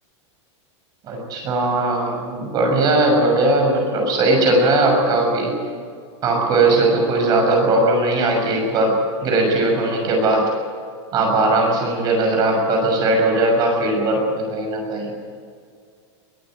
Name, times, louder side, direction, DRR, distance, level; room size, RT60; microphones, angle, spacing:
voice 1, 1.0-5.5 6.2-10.5 11.1-15.1, right 2 dB, 25° right, 1 dB, 6.5 m, -19 dB
22.0 x 15.0 x 9.4 m, 2.1 s
supercardioid pair, 170°, 15 cm